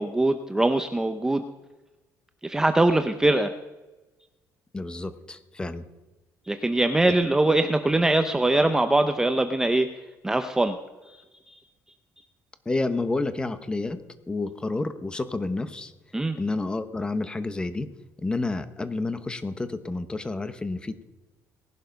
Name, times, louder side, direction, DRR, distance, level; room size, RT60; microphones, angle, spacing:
voice 1, 0.0-1.4 2.4-3.5 6.4-9.9 10.2-10.8 11.0-11.6 16.1-16.4, right 2 dB, 10° right, 8 dB, 0.7 m, -22 dB
voice 2, 4.7-5.8 7.1-7.2 12.6-14.0 14.3-15.9 16.4-17.9 18.2-21.0, left 3 dB, 15° left, 11 dB, 1.1 m, -29 dB
19.0 x 11.5 x 5.3 m, 1.1 s
cardioid pair, 150°, 7 cm